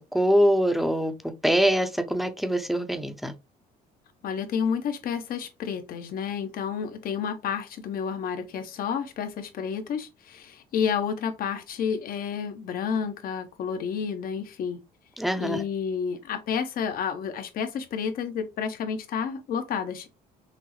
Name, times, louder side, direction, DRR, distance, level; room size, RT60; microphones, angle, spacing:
voice 1, 0.1-1.1 1.4-3.3 15.2-15.6, equal, ahead, 0.7 m, -23 dB
voice 2, 4.2-14.8 15.4-20.1, left 7 dB, 60° left, 0.9 m, -30 dB
5.9 x 2.0 x 3.1 m
cardioid pair, 110°, 17 cm